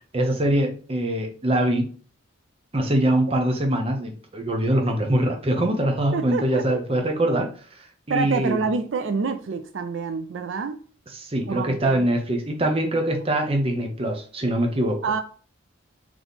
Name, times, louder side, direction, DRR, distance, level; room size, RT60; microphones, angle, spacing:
voice 1, 0.1-1.9 2.7-7.5 7.8-8.6 11.1-15.1, right 1 dB, 30° right, 0.7 m, -23 dB
voice 2, 6.1-6.8 8.1-10.8 11.5-12.0 15.0-15.2, right 4 dB, 70° right, 0.4 m, -27 dB
4.0 x 3.0 x 3.4 m
head